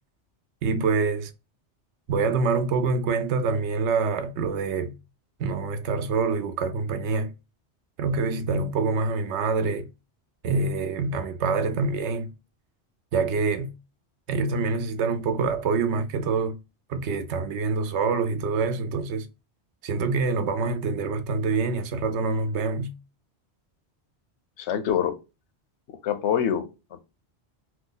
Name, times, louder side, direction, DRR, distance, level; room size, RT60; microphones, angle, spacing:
voice 1, 0.6-1.3 2.1-5.0 5.4-7.3 8.0-9.9 10.4-12.3 13.1-13.7 14.3-16.6 16.9-19.3 19.8-22.9, right 4 dB, 85° right, 0.9 m, -26 dB
voice 2, 24.6-25.2 25.9-27.0, left 8 dB, 85° left, 0.9 m, -26 dB
2.9 x 2.2 x 3.8 m
omnidirectional pair, 1.1 m